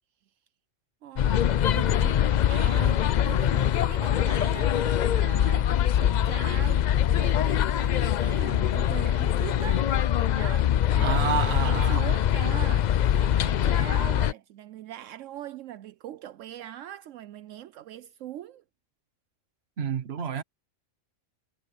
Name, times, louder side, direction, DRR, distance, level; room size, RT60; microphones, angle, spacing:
voice 1, 1.0-5.7 6.0-10.0 10.3-18.6, right 12 dB, 75° right, 1.0 m, -41 dB
sound 1, 1.2-14.3, left 10 dB, 80° left, 0.4 m, -23 dB
voice 2, 11.0-12.1 19.8-20.4, right 7 dB, 55° right, 1.3 m, -29 dB
omnidirectional pair, 1.3 m